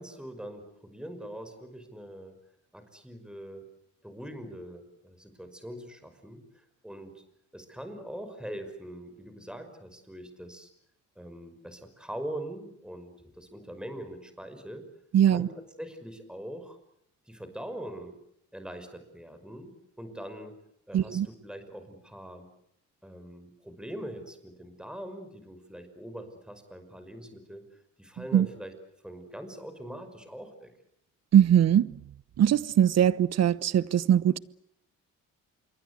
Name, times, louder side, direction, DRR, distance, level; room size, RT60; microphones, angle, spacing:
voice 1, 0.0-2.4 2.7-3.7 4.0-7.2 7.5-10.7 11.2-14.9 15.3-15.5 15.8-16.8 17.3-18.2 18.5-20.6 20.9-22.5 23.0-28.7 29.0-30.7, right 1 dB, 5° right, 5.5 m, -42 dB
voice 2, 15.1-15.5 20.9-21.3 28.3-28.5 31.3-31.9 32.4-34.4, right 10 dB, 60° right, 1.0 m, -21 dB
27.5 x 23.5 x 8.3 m
cardioid pair, 90°, 30 cm